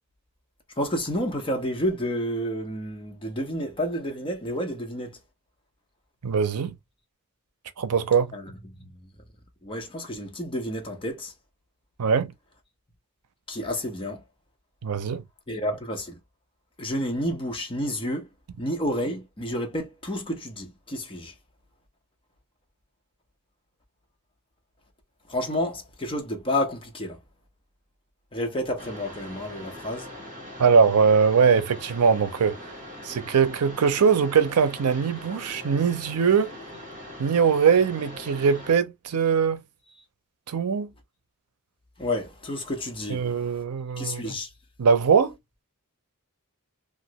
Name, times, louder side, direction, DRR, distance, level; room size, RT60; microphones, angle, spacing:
voice 1, 0.8-5.2 8.3-8.5 8.8-8.9 9.6-11.3 13.5-14.2 15.5-16.2 16.8-18.3 18.6-21.3 25.3-27.2 28.3-30.1 42.0-43.6 44.0-44.5, equal, 25° left, 0.8 m, -30 dB
voice 2, 6.2-6.8 7.8-8.3 12.0-12.3 14.8-15.2 30.6-32.6 33.0-36.5 37.2-39.6 40.5-40.9 43.1-44.2 44.8-45.3, right 6 dB, 90° right, 0.5 m, -21 dB
Mechanisms, 28.8-38.7, left 1 dB, 35° right, 1.8 m, -41 dB
2.9 x 2.5 x 2.8 m
head